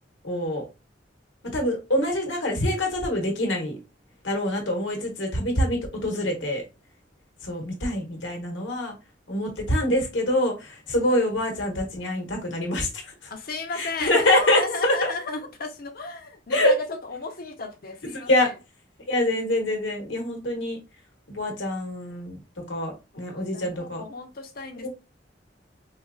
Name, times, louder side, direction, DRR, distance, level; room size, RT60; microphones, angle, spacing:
voice 1, 0.2-0.7 1.5-3.8 4.2-6.6 7.4-8.9 9.3-13.3 13.7-14.9 16.5-16.7 18.1-18.5 19.1-20.8 21.3-22.4 22.7-24.0 24.8-24.9, left 1 dB, 85° left, 1.2 m, -25 dB
voice 2, 13.3-18.6 23.1-24.9, left 3 dB, 55° left, 0.7 m, -34 dB
4.2 x 2.5 x 2.4 m
head